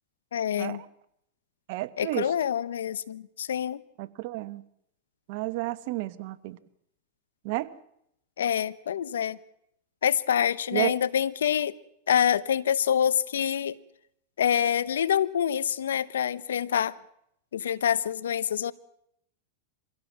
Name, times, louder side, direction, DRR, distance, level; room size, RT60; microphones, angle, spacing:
voice 1, 0.3-0.8 2.0-3.8 8.4-9.4 10.0-11.7 12.1-13.8 14.4-17.0 17.5-18.7, left 9 dB, 90° left, 0.8 m, -26 dB
voice 2, 1.7-2.3 4.0-4.6 5.3-6.6 7.4-7.7 10.7-10.9, right 19 dB, 60° right, 1.2 m, -31 dB
24.0 x 16.5 x 7.4 m
hypercardioid pair, 120°, 0 cm